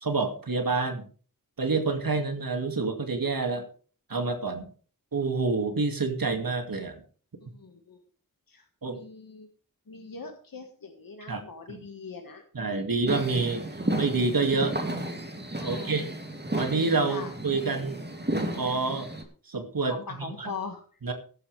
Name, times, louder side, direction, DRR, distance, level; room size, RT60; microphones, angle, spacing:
voice 1, 0.0-1.1 1.6-3.7 4.1-4.7 5.1-7.0 8.8-9.0 11.3-11.4 11.7-11.8 12.5-13.7 14.0-14.8 15.7-16.0 16.6-18.0 18.6-19.1 19.5-20.5 21.0-21.1, right 3 dB, 80° right, 6 dB, 2.3 m, -27 dB
voice 2, 7.4-8.0 8.5-9.5 9.9-12.4 12.9-13.2 15.6-16.1 17.1-17.3 19.9-20.8, left 4 dB, 80° left, 3 dB, 1.8 m, -41 dB
sound 1, 13.1-19.2, right 1 dB, 30° right, 2.7 m, -33 dB
15.0 x 12.0 x 3.4 m, 0.42 s
wide cardioid pair, 45°, 34 cm